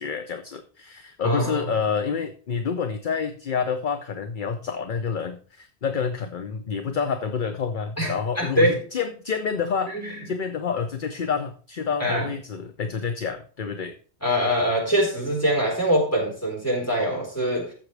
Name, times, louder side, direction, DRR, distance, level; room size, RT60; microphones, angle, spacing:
voice 1, 0.0-14.0, left 6 dB, 50° left, 8 dB, 0.9 m, -28 dB
voice 2, 1.2-1.7 8.0-8.8 9.9-10.1 12.0-12.3 14.2-17.7, equal, 15° left, -2 dB, 4.3 m, -23 dB
13.0 x 7.6 x 3.3 m, 0.40 s
omnidirectional pair, 1.1 m